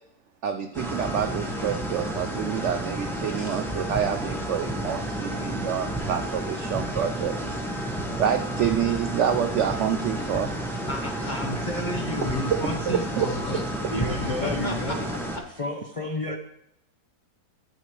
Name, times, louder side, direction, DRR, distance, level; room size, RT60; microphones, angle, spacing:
voice 1, 0.4-7.9 8.2-10.5 12.2-13.3, right 8 dB, 80° right, 8 dB, 0.6 m, -28 dB
sound 1, 0.7-15.4, right 1 dB, ahead, 0.9 m, -31 dB
voice 2, 10.9-13.6 13.9-15.0 15.3-15.4, left 1 dB, 35° left, 3 dB, 0.8 m, -32 dB
voice 3, 13.9-15.1 15.5-16.4, left 2 dB, 55° left, 2 dB, 0.3 m, -31 dB
12.0 x 7.0 x 3.2 m, 0.80 s
omnidirectional pair, 1.8 m